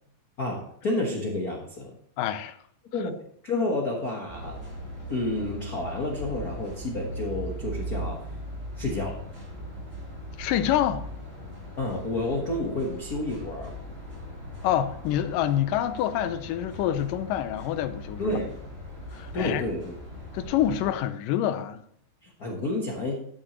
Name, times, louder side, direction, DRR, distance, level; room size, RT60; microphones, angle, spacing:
voice 1, 0.4-1.9 2.9-3.2 3.4-4.6 5.1-8.2 8.8-9.2 11.8-13.7 18.2-18.5 19.3-19.9 22.2-23.2, left 2 dB, 65° left, 0.9 m, -30 dB
voice 2, 2.2-2.6 10.4-11.1 14.6-18.4 19.1-19.6 20.3-21.8, left 11 dB, 80° left, 2.3 m, -27 dB
sound 1, 4.3-20.9, equal, 20° right, 3.6 m, -39 dB
12.5 x 8.8 x 3.1 m
omnidirectional pair, 3.9 m